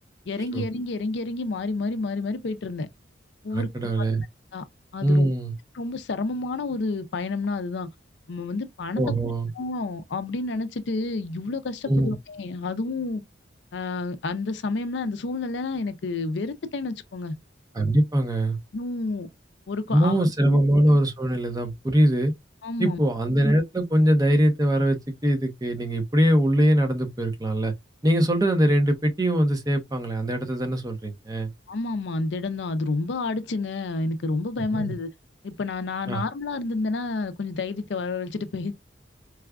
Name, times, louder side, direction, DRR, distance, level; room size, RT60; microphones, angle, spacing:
voice 1, 0.3-2.9 3.4-3.7 4.0-4.1 4.5-4.6 4.9-5.3 5.7-7.9 8.3-9.0 9.6-13.2 13.7-17.4 18.7-19.3 19.7-20.7 22.6-23.0 31.7-35.1 35.4-38.7, left 3 dB, 65° left, 0.5 m, -29 dB
voice 2, 3.5-4.2 5.0-5.5 9.0-9.5 11.9-12.1 17.7-18.6 19.9-22.3 22.8-27.7 28.0-31.5 34.7-34.9 36.1-36.2, right 1 dB, 20° right, 0.7 m, -22 dB
4.7 x 2.3 x 2.3 m
head